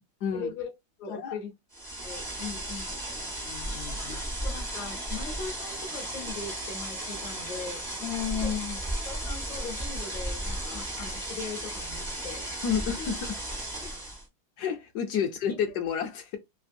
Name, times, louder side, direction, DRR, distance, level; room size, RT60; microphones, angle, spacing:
voice 1, 0.3-0.7 1.0-1.5 2.0-2.9 4.4-7.8 8.3-8.5 9.0-12.5 13.0-13.1 13.8-13.9, left 4 dB, 55° left, 0.5 m, -40 dB
sound 1, 1.7-14.3, right 1 dB, 20° right, 0.5 m, -35 dB
voice 2, 3.3-4.2 8.0-8.8 10.7-10.8 12.6-13.3 14.6-16.4, left 8 dB, 70° left, 1.0 m, -31 dB
3.4 x 2.5 x 2.5 m
omnidirectional pair, 2.1 m